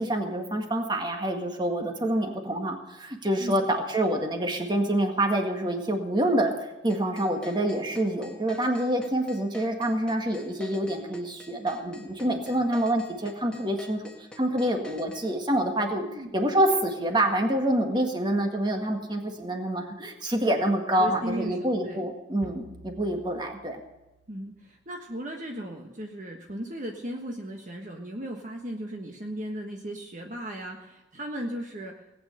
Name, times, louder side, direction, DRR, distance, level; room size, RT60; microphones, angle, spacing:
voice 1, 0.0-6.5 6.8-14.0 14.4-16.0 16.3-23.8, right 1 dB, 25° right, 3 dB, 1.8 m, -27 dB
sound 1, 6.9-15.2, left 1 dB, 5° left, 1.9 m, -46 dB
voice 2, 16.0-16.4 21.0-22.1 24.3-31.9, equal, 40° right, 1 dB, 1.4 m, -36 dB
sound 2, 22.4-25.0, right 2 dB, 75° right, 1.4 m, -50 dB
18.5 x 9.2 x 6.7 m, 1.0 s
head